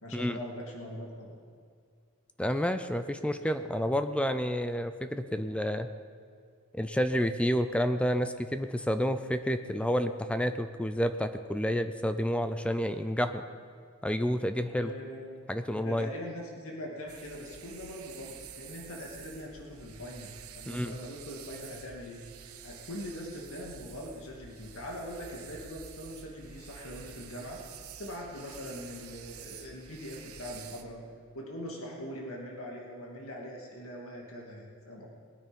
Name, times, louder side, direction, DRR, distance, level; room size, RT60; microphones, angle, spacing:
voice 1, 0.0-1.3 14.8-15.3 15.7-22.2 22.6-27.6 28.0-31.0 31.3-35.1, equal, 65° left, -1 dB, 2.5 m, -42 dB
voice 2, 2.4-5.9 6.7-13.4 14.0-14.9 15.5-16.1 20.7-20.9, equal, 5° left, 9 dB, 0.5 m, -29 dB
sound 1, 17.1-30.8, right 7 dB, 75° right, 1.0 m, -49 dB
21.0 x 9.2 x 5.4 m, 2.2 s
head